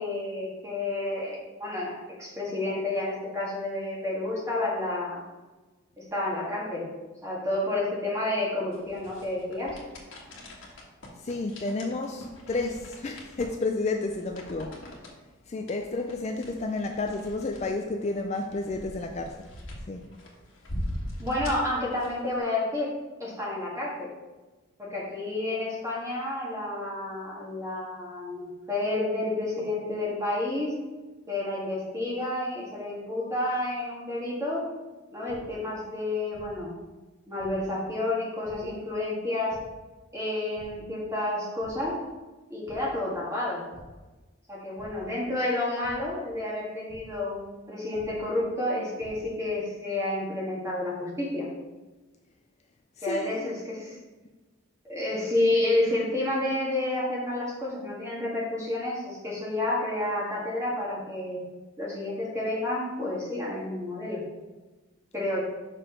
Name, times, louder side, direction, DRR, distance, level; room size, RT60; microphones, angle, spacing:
voice 1, 0.0-5.2 6.0-6.9 7.2-9.8 21.2-22.9 23.2-24.1 24.8-30.7 31.3-34.7 35.1-36.7 37.3-39.6 40.1-42.0 42.5-43.6 44.5-51.5 53.0-53.9 54.8-61.4 61.8-64.2 65.1-65.4, left 2 dB, 15° right, -5 dB, 1.9 m, -30 dB
sound 1, 8.7-22.4, equal, 65° left, 1.4 m, -42 dB
voice 2, 11.2-14.9 15.5-19.5 19.8-20.1 53.0-53.5, left 3 dB, 30° left, 3 dB, 0.3 m, -31 dB
sound 2, 35.3-35.4 36.3-36.4 37.4-37.5 38.4-38.5 39.5-39.6 40.5-40.6 41.1-41.3 41.6-41.7 42.7-42.8 43.7-43.8 44.8-44.9 45.8-45.9 46.9-47.0 47.9-48.0 48.7-49.1, right 2 dB, 70° right, 2.1 m, -50 dB
6.1 x 4.8 x 4.5 m, 1.2 s
head